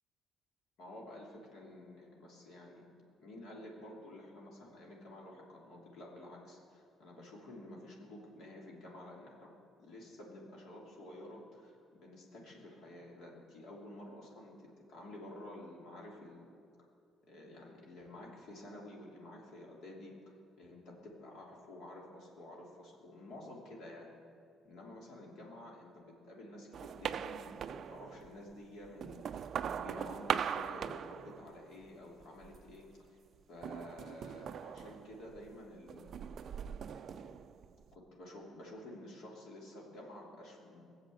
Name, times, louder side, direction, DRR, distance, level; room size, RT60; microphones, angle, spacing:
voice 1, 0.8-2.9 3.2-9.5 9.8-16.5 17.3-20.1 20.6-24.1 24.6-33.2 33.5-36.2 36.9-37.3 37.9-40.8, left 1 dB, 60° left, -2 dB, 3.0 m, -51 dB
sound 1, 26.7-28.4 28.8-31.8 32.2-32.8 33.6-35.5 35.9-37.9, right 8 dB, 40° right, 0.4 m, -40 dB
21.0 x 7.5 x 7.8 m, 2.5 s
cardioid pair, 165°, 0 cm